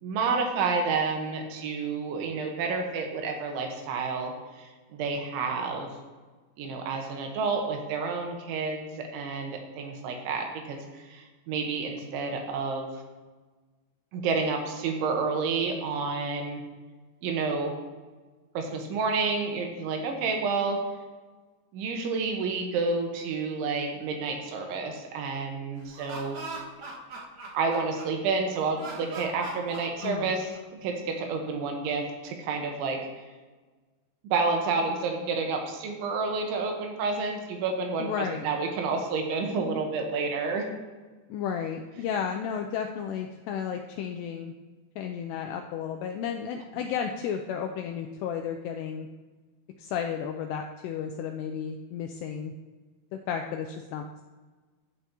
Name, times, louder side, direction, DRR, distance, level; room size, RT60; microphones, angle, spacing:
voice 1, 0.0-5.9 6.6-12.9 14.1-16.6 17.2-17.7 18.6-20.8 21.7-26.4 27.5-30.5 30.8-33.0 34.3-38.1 38.4-40.7, right 4 dB, 80° right, 3 dB, 3.6 m, -29 dB
Laughter, 25.8-28.3 28.8-30.8, right 3 dB, 55° right, 2.7 m, -40 dB
voice 2, 30.0-30.3 38.0-38.4 41.3-44.5 45.0-49.1 49.8-52.5 53.1-54.2, left 7 dB, 90° left, 4 dB, 2.4 m, -33 dB
14.5 x 8.3 x 2.9 m, 1.3 s
omnidirectional pair, 5.4 m